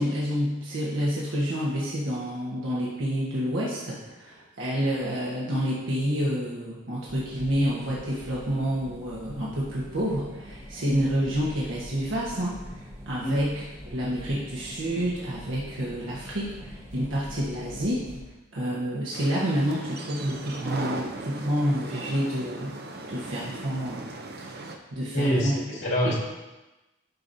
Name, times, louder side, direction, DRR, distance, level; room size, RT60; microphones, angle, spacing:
voice 1, 0.0-18.1 18.5-22.8 23.1-24.6 24.9-25.5 26.0-26.1, equal, 90° right, -6 dB, 1.3 m, -29 dB
sound 1, 7.1-18.2, equal, 15° right, 1.2 m, -44 dB
sound 2, 19.1-24.8, right 2 dB, 50° right, 0.6 m, -37 dB
voice 2, 25.1-26.1, equal, 80° left, -6 dB, 2.1 m, -25 dB
10.5 x 5.8 x 2.7 m, 1.1 s
head